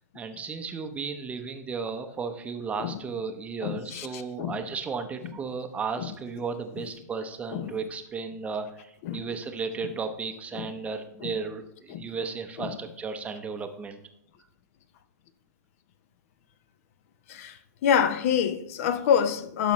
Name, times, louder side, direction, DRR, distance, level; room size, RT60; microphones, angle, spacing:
voice 1, 0.1-14.0, right 5 dB, 15° right, 0.7 m, -34 dB
voice 2, 3.6-4.6 7.5-7.7 9.0-9.2 10.5-10.7 11.2-11.3 11.9-12.0 12.6-12.7 17.3-17.5 17.8-19.7, left 8 dB, 50° left, 0.7 m, -26 dB
12.0 x 5.5 x 3.1 m
hypercardioid pair, 130°, 10 cm